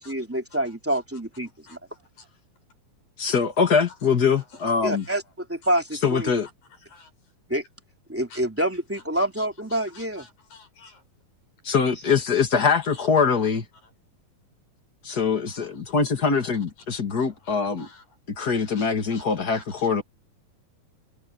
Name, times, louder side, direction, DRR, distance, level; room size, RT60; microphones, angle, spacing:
voice 1, 0.0-1.8 4.8-5.2 5.5-6.3 7.5-7.6 8.1-10.2, right 1 dB, 5° right, 2.6 m, -27 dB
voice 2, 1.7-2.3 4.4-4.7 4.9-5.2 6.3-6.5 6.9-7.1 8.3-8.4 9.2-9.5 9.9-11.0 11.9-12.0 12.6-13.1 13.4-13.5 15.5-15.8 17.2-18.1 18.6-20.0, left 3 dB, 75° left, 9.1 m, -50 dB
voice 3, 3.2-5.1 6.0-6.5 11.6-13.7 15.0-17.9 18.4-20.0, left 5 dB, 35° left, 2.0 m, -23 dB
omnidirectional pair, 4.1 m